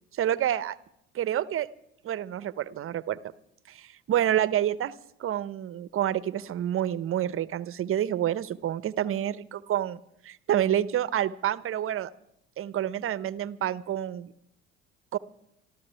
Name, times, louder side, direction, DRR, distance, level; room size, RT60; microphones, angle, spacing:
voice 1, 0.1-0.8 1.1-1.7 2.0-3.2 3.7-4.9 5.2-12.1 12.6-14.3 15.1-15.2, right 11 dB, 45° right, 18 dB, 0.9 m, -28 dB
26.0 x 13.5 x 3.4 m, 0.74 s
hypercardioid pair, 65°, 32 cm